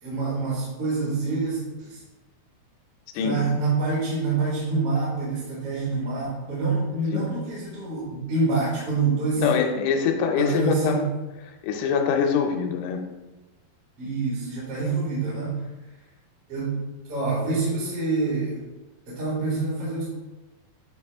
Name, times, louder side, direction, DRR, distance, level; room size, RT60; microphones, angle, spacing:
voice 1, 0.0-2.0 3.2-9.5 10.4-11.0 14.0-15.6 16.5-16.8 17.1-18.6 19.1-20.0, right 3 dB, 45° right, -7 dB, 2.4 m, -26 dB
voice 2, 9.4-11.0 11.6-13.0 14.8-14.9, left 6 dB, 85° left, 3 dB, 2.8 m, -24 dB
9.1 x 4.1 x 3.5 m, 1.1 s
omnidirectional pair, 4.8 m